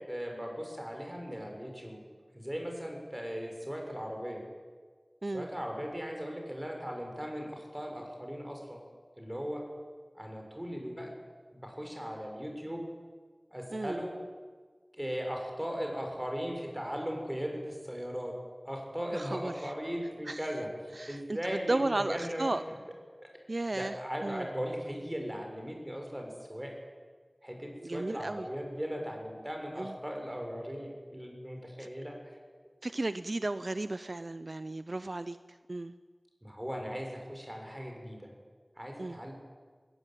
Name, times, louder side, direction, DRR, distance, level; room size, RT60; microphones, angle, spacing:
voice 1, 0.1-2.0 2.3-4.4 5.2-8.8 9.2-9.7 10.1-11.1 11.5-12.8 13.5-14.2 14.9-18.3 18.6-22.8 23.7-26.7 27.4-32.1 36.4-38.3 38.8-39.3, equal, 15° right, 1 dB, 6.5 m, -38 dB
voice 2, 13.7-14.0 19.1-19.5 20.3-20.4 21.0-22.6 23.5-24.0 24.2-24.5 27.8-28.5 29.8-29.9 31.8-31.9 32.8-35.9 39.0-39.2, right 2 dB, 65° right, 12 dB, 0.6 m, -34 dB
20.0 x 18.5 x 9.3 m, 1.5 s
wide cardioid pair, 50°, 0 cm